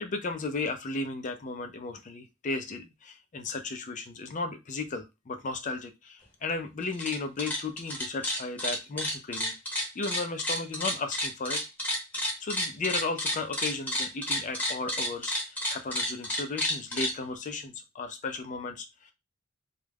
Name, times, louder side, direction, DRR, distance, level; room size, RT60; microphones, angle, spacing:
voice 1, 0.0-11.6 12.2-19.1, left 3 dB, 40° left, 7 dB, 0.4 m, -35 dB
sound 1, 6.8-7.1 7.4-17.1, left 1 dB, 10° left, 0.8 m, -30 dB
2.3 x 2.1 x 3.3 m, 0.23 s
head